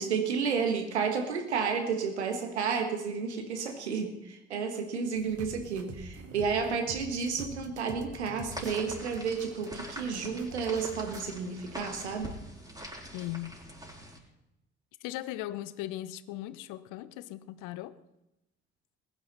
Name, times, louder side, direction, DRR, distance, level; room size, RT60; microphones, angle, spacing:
voice 1, 0.0-12.4, right 5 dB, 85° right, 1.5 m, -31 dB
sound 1, 5.1-11.3, right 4 dB, 45° right, 1.7 m, -47 dB
sound 2, 8.5-14.2, equal, 10° right, 4.9 m, -44 dB
voice 2, 13.1-13.6 15.0-17.9, left 15 dB, 70° left, 0.8 m, -38 dB
20.5 x 10.5 x 4.1 m
figure-of-eight pair, 40°, 33 cm